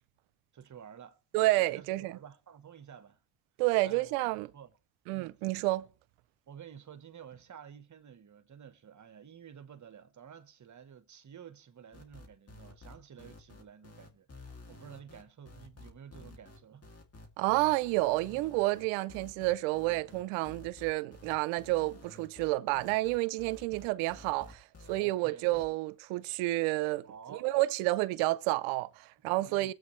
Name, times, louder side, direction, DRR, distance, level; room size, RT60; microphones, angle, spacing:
voice 1, 0.5-1.2 1.6-3.2 3.8-4.1 4.5-4.7 5.1-5.4 6.5-16.9 17.5-17.7 25.0-25.4 27.0-27.4 29.2-29.7, right 8 dB, 40° right, 1.2 m, -51 dB
voice 2, 1.3-2.2 3.6-4.5 5.1-5.9 17.4-27.1 27.4-29.7, right 19 dB, 85° right, 0.6 m, -30 dB
sound 1, 11.9-25.0 25.4-25.7, left 2 dB, 30° left, 2.6 m, -52 dB
22.5 x 8.0 x 3.2 m
supercardioid pair, 75°, 47 cm